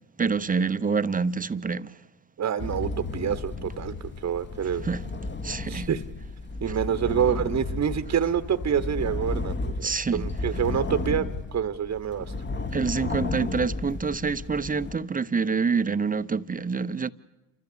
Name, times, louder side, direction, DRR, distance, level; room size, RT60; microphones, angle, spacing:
voice 1, 0.2-1.9 4.8-5.0 5.4-5.9 9.8-10.3 12.7-17.1, right 5 dB, 20° right, 0.7 m, -26 dB
voice 2, 2.4-3.9 4.2-4.9 5.7-6.0 6.6-11.3 11.5-12.3, right 8 dB, 35° right, 1.1 m, -27 dB
sound 1, 2.6-15.0, left 2 dB, 25° left, 1.3 m, -33 dB
28.5 x 14.0 x 8.6 m
supercardioid pair, 70°, 43 cm